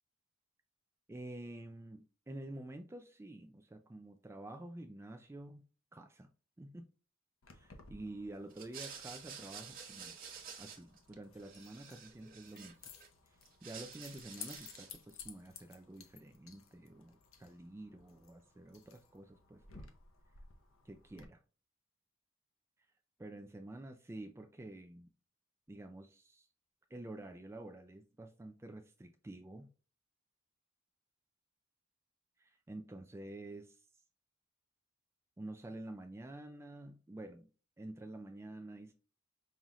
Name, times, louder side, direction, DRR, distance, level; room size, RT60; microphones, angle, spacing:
voice 1, 1.1-5.7 5.9-6.3 6.6-6.9 7.5-12.8 13.3-19.9 20.8-21.4 23.2-25.1 25.7-26.5 26.9-29.7 32.4-33.9 35.4-37.5 37.8-38.9, right 1 dB, 15° right, 0.3 m, -49 dB
Keys jangling, 7.4-21.2, left 6 dB, 70° left, 0.7 m, -56 dB
sound 1, 8.5-11.1 11.4-13.1 13.4-15.0, right 6 dB, 45° right, 1.1 m, -50 dB
5.5 x 2.4 x 2.9 m
head